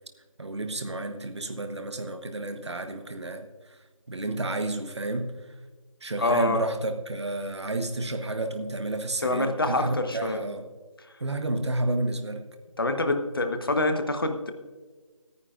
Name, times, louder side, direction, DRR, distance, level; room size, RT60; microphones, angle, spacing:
voice 1, 0.4-3.8 4.1-5.3 6.0-10.7 11.2-12.4, right 2 dB, 50° right, 7 dB, 1.2 m, -31 dB
voice 2, 6.2-6.6 9.2-10.4 12.8-14.5, left 2 dB, 40° left, 7 dB, 1.1 m, -26 dB
25.0 x 9.8 x 2.5 m, 1.4 s
figure-of-eight pair, 170°, 18 cm